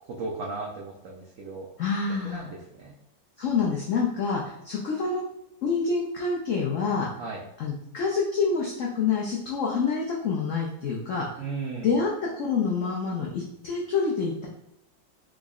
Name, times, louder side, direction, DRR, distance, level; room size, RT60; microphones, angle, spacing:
voice 1, 0.0-1.7 2.2-3.0 7.2-7.4 11.4-11.9, right 3 dB, 85° right, -3 dB, 0.7 m, -36 dB
voice 2, 1.8-2.5 3.4-5.2 5.6-7.1 7.6-11.3 11.8-14.5, left 5 dB, 80° left, -3 dB, 0.7 m, -27 dB
3.7 x 2.0 x 3.6 m, 0.85 s
omnidirectional pair, 2.0 m